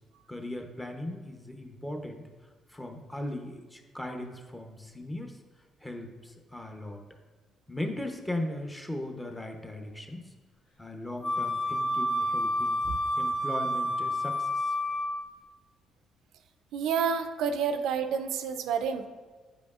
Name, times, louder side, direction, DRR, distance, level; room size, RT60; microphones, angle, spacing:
voice 1, 0.3-2.2 2.7-5.4 5.8-7.0 7.7-10.3 10.8-12.8 13.2-14.7, left 1 dB, 10° left, 4 dB, 0.8 m, -38 dB
Wind instrument woodwind instrument, 11.2-15.3, left 1 dB, 60° left, 1.4 m, -29 dB
voice 2, 16.7-19.1, right 6 dB, 85° right, 8 dB, 0.4 m, -29 dB
8.2 x 5.0 x 2.4 m, 1.4 s
cardioid pair, 90°, 0 cm